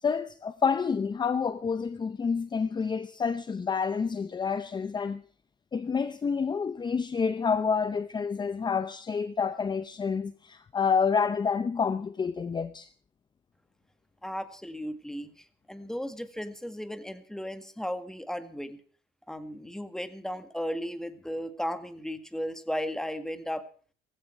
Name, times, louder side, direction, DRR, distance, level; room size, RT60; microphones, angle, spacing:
voice 1, 0.0-5.2 5.7-12.9, left 5 dB, 25° left, 0.7 m, -28 dB
voice 2, 14.2-18.8 19.3-23.7, equal, 5° left, 1.9 m, -35 dB
17.5 x 16.0 x 4.6 m
cardioid pair, 110°, 17 cm